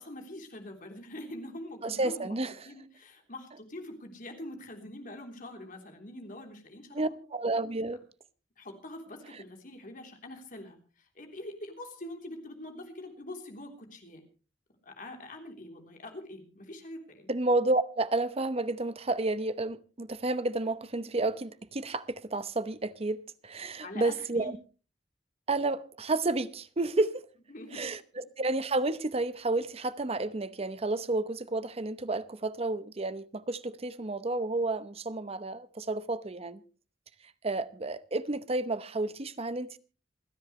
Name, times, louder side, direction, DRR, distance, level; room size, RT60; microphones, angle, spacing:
voice 1, 0.0-2.3 2.6-7.2 8.6-14.2 14.8-17.3 23.8-24.5 27.5-27.8, left 1 dB, 50° left, 3.4 m, -44 dB
voice 2, 1.8-2.5 6.9-8.0 17.3-24.6 25.5-27.3 27.7-36.6 37.4-39.8, right 2 dB, 35° right, 0.8 m, -31 dB
28.0 x 10.5 x 3.2 m
head